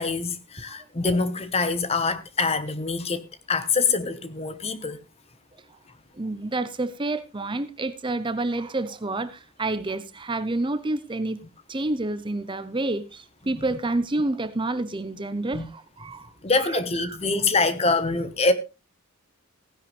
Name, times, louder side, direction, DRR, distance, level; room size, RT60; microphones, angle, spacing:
voice 1, 0.0-5.0 13.5-13.6 15.5-15.7 16.4-18.5, left 3 dB, 30° left, 1.0 m, -25 dB
voice 2, 6.2-11.4 11.7-16.3 16.6-17.2, right 2 dB, 20° right, 0.7 m, -29 dB
16.0 x 10.5 x 3.2 m
head